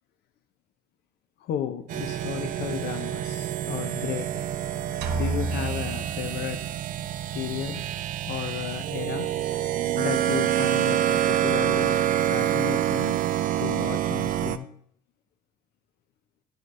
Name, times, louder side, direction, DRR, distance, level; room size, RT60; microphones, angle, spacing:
voice 1, 1.4-4.5 5.1-6.6 7.3-7.8 8.3-9.3 10.0-12.0 12.3-13.2 13.6-14.7, left 11 dB, 75° left, 8 dB, 0.6 m, -33 dB
sound 1, 1.9-14.6, right 11 dB, 55° right, 0.5 m, -27 dB
sound 2, 5.0-6.9, right 4 dB, 80° right, 0.9 m, -31 dB
11.0 x 3.8 x 4.1 m, 0.64 s
cardioid pair, 110°, 17 cm